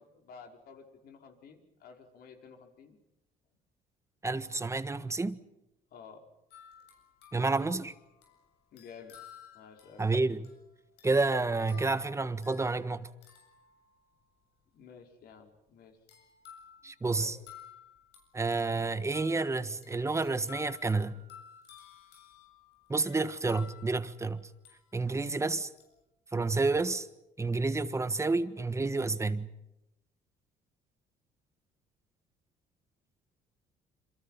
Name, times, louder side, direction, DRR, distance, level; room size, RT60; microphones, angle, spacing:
voice 1, 0.0-3.0 5.9-6.3 8.7-9.2 9.5-10.1 14.7-16.0 16.8-17.3, left 6 dB, 65° left, 5.3 m, -52 dB
voice 2, 4.2-5.4 7.3-7.9 10.0-10.5 11.0-13.1 16.8-17.4 18.3-21.1 22.9-24.4 24.9-25.7 26.3-27.1 27.4-29.5, right 3 dB, 15° right, 1.5 m, -30 dB
sound 1, 6.5-14.4 16.1-25.3 25.8-26.0, left 9 dB, 85° left, 7.7 m, -55 dB
28.0 x 27.0 x 5.8 m
cardioid pair, 110°, 17 cm